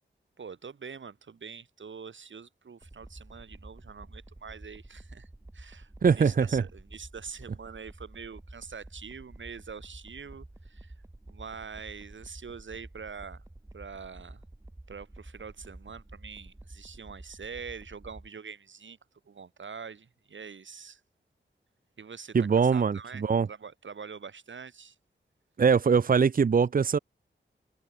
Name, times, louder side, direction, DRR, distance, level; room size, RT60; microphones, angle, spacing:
voice 1, 0.4-10.9 11.3-13.4 13.7-14.4 14.9-19.0 19.3-21.0 22.0-25.0, right 6 dB, 80° right, 4.2 m, -44 dB
sound 1, 2.8-18.3, right 1 dB, 15° right, 3.6 m, -49 dB
voice 2, 6.0-6.6 22.3-23.5 25.6-27.0, right 6 dB, 50° right, 0.7 m, -22 dB
wide cardioid pair, 125°, 19 cm